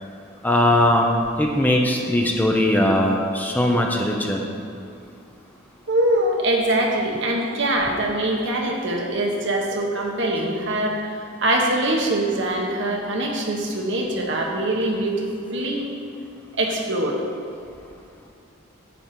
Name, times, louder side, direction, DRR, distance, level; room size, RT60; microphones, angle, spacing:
voice 1, 0.4-1.1 1.4-4.4, left 1 dB, 10° left, 1 dB, 0.8 m, -19 dB
voice 2, 5.9-11.1 11.4-15.8 16.6-17.2, right 1 dB, 65° right, 0 dB, 1.4 m, -23 dB
10.0 x 4.2 x 7.6 m, 2.6 s
head